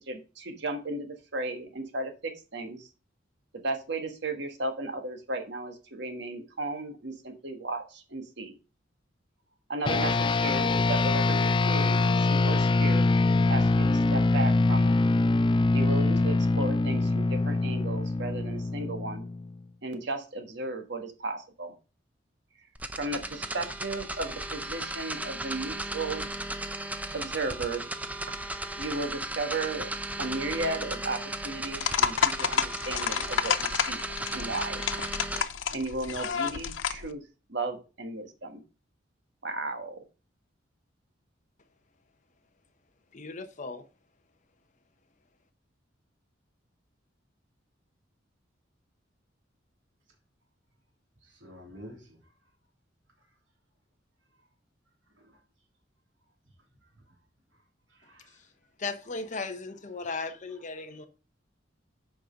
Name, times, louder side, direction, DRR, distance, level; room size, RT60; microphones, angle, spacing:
voice 1, 0.0-2.9 3.6-8.5 9.7-13.1 13.5-15.0 15.7-19.2 19.8-21.7 22.9-26.3 27.1-27.9 28.8-29.9 30.2-31.2 31.4-34.0 34.3-34.8 35.7-37.2 37.5-38.6 39.4-40.0, right 2 dB, 65° right, 1.6 m, -35 dB
sound 1, 9.9-19.6, left 3 dB, 25° left, 0.4 m, -24 dB
sound 2, 22.7-35.4, right 1 dB, 10° right, 0.7 m, -36 dB
sound 3, 31.7-37.1, left 7 dB, 80° left, 0.6 m, -30 dB
voice 2, 43.1-43.8 58.8-61.1, left 3 dB, 40° left, 0.9 m, -36 dB
voice 3, 51.2-52.2 55.2-55.4 56.9-57.0 57.9-58.4 60.0-60.1, equal, 85° right, 3.2 m, -50 dB
8.3 x 5.3 x 5.1 m
head